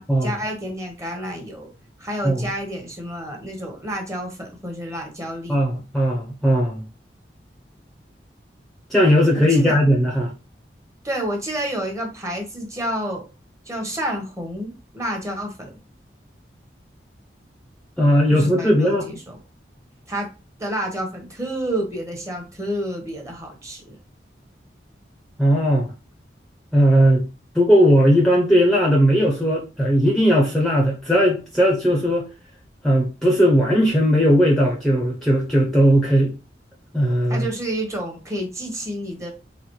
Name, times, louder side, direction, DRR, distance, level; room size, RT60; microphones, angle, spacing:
voice 1, 0.0-1.7 2.0-5.6 9.3-9.7 11.0-13.2 13.6-15.8 18.3-19.4 20.1-20.3 20.6-24.0 37.3-39.3, right 1 dB, 15° right, 1.1 m, -29 dB
voice 2, 5.5-6.8 8.9-10.3 18.0-19.0 25.4-25.9 26.7-27.2 27.5-32.3 32.8-36.3 36.9-37.5, equal, ahead, 0.8 m, -17 dB
4.0 x 3.6 x 3.1 m
head